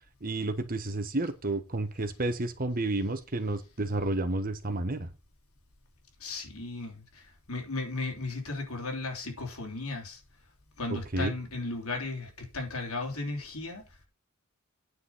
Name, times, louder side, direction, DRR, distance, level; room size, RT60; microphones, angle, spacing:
voice 1, 0.2-5.1 10.9-11.3, right 2 dB, 40° right, 1.3 m, -31 dB
voice 2, 6.2-10.2 10.8-14.0, left 3 dB, 80° left, 3.5 m, -36 dB
9.7 x 6.3 x 5.6 m
head